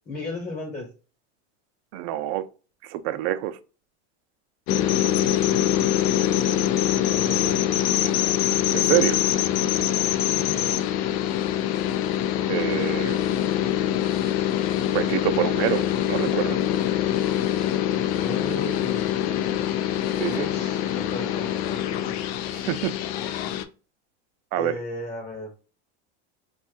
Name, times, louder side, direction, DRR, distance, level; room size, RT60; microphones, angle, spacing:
voice 1, 0.0-0.9 7.1-7.8 10.2-10.8 18.2-19.6 20.3-22.2 24.6-25.5, left 2 dB, 30° left, 1.2 m, -36 dB
voice 2, 1.9-2.4 2.8-3.6 8.7-9.2 12.5-13.2 14.9-16.6 20.2-20.5 22.5-22.9 24.5-24.7, right 13 dB, 65° right, 0.6 m, -26 dB
sound 1, 4.7-23.6, left 11 dB, 65° left, 0.5 m, -24 dB
2.6 x 2.4 x 3.8 m
supercardioid pair, 110°, 34 cm